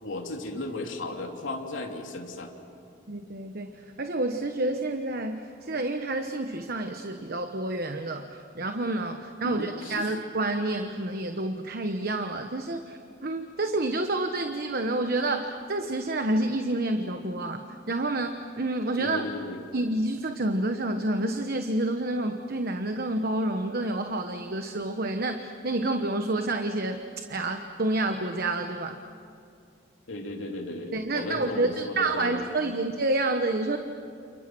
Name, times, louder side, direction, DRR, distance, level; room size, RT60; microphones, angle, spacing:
voice 1, 0.0-2.5 9.4-10.1 19.0-19.6 30.1-32.4, left 2 dB, 85° left, 2 dB, 3.0 m, -35 dB
voice 2, 3.1-19.2 19.7-27.0 27.3-29.0 30.9-33.8, right 2 dB, 50° right, 6 dB, 1.2 m, -29 dB
29.5 x 29.5 x 6.1 m, 2.5 s
head